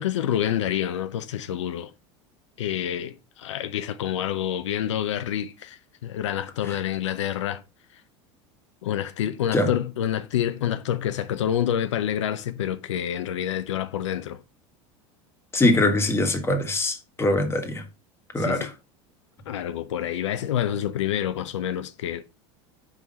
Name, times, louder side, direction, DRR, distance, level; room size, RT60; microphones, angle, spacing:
voice 1, 0.0-1.9 2.6-7.6 8.8-14.4 18.4-18.7 19.5-22.2, left 10 dB, 90° left, 0.5 m, -27 dB
voice 2, 15.5-17.8 18.3-18.7, left 2 dB, 15° left, 1.5 m, -23 dB
4.7 x 3.7 x 5.3 m
hypercardioid pair, 95°, 15 cm